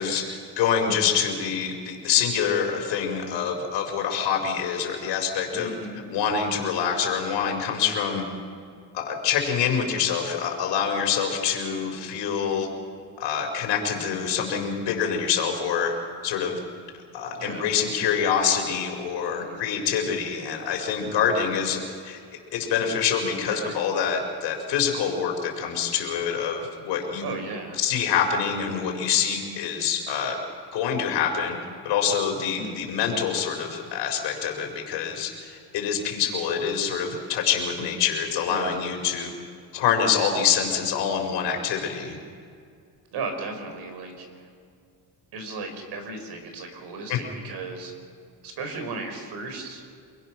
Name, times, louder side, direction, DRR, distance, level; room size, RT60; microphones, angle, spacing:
voice 1, 0.0-5.7 6.1-8.2 8.9-12.7 13.2-15.9 16.2-16.6 17.1-22.2 22.5-27.3 27.8-30.4 30.7-31.5 31.8-39.3 39.7-42.2 47.1-47.2, left 7 dB, 75° left, 2 dB, 4.7 m, -26 dB
voice 2, 5.5-6.0 17.3-17.7 19.4-19.6 23.4-23.8 27.2-27.8 32.5-32.9 38.5-38.8 43.1-44.5 45.3-48.0 48.4-49.9, right 3 dB, 65° right, 5 dB, 4.5 m, -35 dB
29.0 x 21.0 x 6.1 m, 2.3 s
cardioid pair, 115°, 43 cm